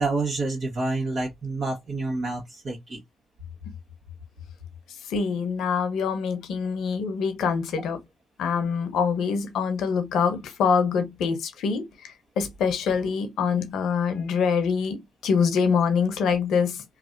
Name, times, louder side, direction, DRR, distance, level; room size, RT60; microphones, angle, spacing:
voice 1, 0.0-3.0, right 3 dB, 60° right, 1.4 m, -28 dB
voice 2, 5.1-8.0 8.4-16.8, left 6 dB, 80° left, 0.9 m, -25 dB
3.2 x 2.3 x 2.6 m
supercardioid pair, 60°, 0 cm